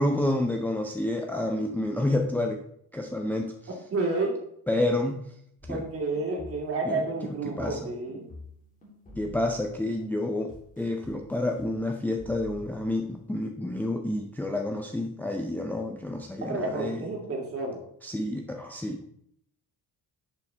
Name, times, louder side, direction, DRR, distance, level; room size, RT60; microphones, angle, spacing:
voice 1, 0.0-2.6 2.9-3.5 4.7-5.2 5.7-5.8 6.8-7.9 9.2-17.0 18.0-19.0, left 1 dB, 5° left, 2 dB, 0.5 m, -29 dB
voice 2, 3.9-4.4 5.7-8.2 16.4-17.8, right 3 dB, 40° right, -1 dB, 2.4 m, -30 dB
sound 1, 5.6-6.8 7.1-9.9 10.5-11.7 12.2-13.0, left 1 dB, 20° left, 3.1 m, -47 dB
10.5 x 5.7 x 3.4 m, 0.70 s
cardioid pair, 155°, 35 cm